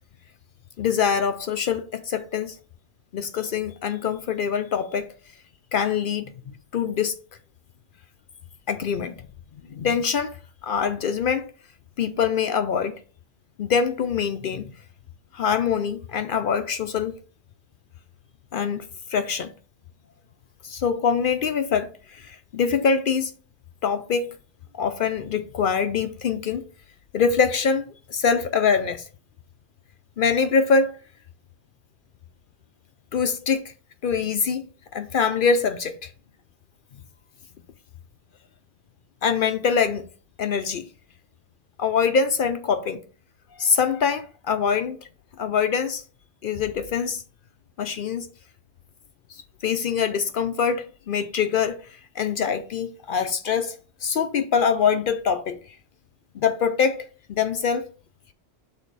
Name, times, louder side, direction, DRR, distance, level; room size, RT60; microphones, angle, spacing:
voice 1, 0.8-2.5 3.1-5.1 5.7-7.1 8.7-9.1 9.7-10.3 10.6-11.4 12.0-12.9 13.6-14.7 15.3-17.2 18.5-18.8 19.1-19.5 20.6-23.3 23.8-24.3 24.8-26.6 27.1-29.0 30.2-30.9 33.1-33.6 34.0-34.6 34.9-36.1 39.2-40.1 40.4-40.9 41.8-43.0 43.6-45.0 45.4-46.0 46.4-47.2 47.8-48.3 49.6-51.8 52.2-55.6 56.3-57.8, left 6 dB, 60° left, 0.6 m, -24 dB
6.3 x 3.9 x 3.9 m
omnidirectional pair, 1.2 m